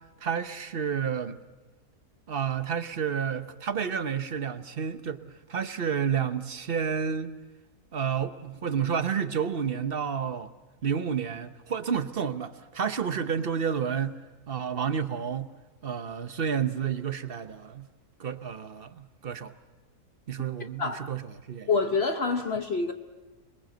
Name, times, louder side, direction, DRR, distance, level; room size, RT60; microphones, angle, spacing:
voice 1, 0.2-1.4 2.3-5.2 5.5-7.3 7.9-10.5 10.8-14.1 14.5-15.5 15.8-17.9 18.2-19.5 20.3-21.2 21.5-21.7, right 7 dB, 45° right, 11 dB, 1.0 m, -30 dB
voice 2, 21.7-22.9, left 4 dB, 45° left, 6 dB, 1.1 m, -26 dB
26.5 x 21.5 x 7.8 m, 1.2 s
omnidirectional pair, 1.7 m